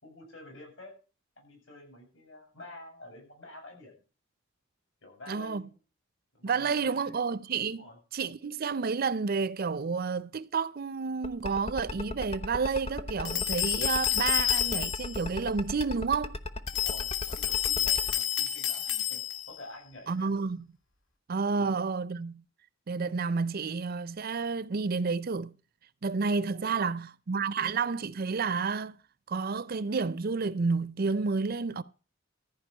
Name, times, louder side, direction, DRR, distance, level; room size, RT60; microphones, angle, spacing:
voice 1, 0.0-0.9 1.4-4.0 5.0-5.8 6.3-7.2 7.7-8.0 16.7-19.2 19.5-20.3 21.5-21.8 26.3-26.8, left 1 dB, 65° left, 7.3 m, -49 dB
voice 2, 5.3-5.6 6.4-7.9 8.1-16.4 20.1-20.7 21.3-22.4 22.9-25.5 26.0-29.0 29.3-31.8, right 4 dB, 45° right, 0.5 m, -30 dB
sound 1, 11.2-18.1, left 2 dB, 30° left, 0.9 m, -35 dB
sound 2, 13.2-15.2 16.7-19.5, left 10 dB, 80° left, 1.9 m, -29 dB
14.0 x 5.1 x 8.9 m
head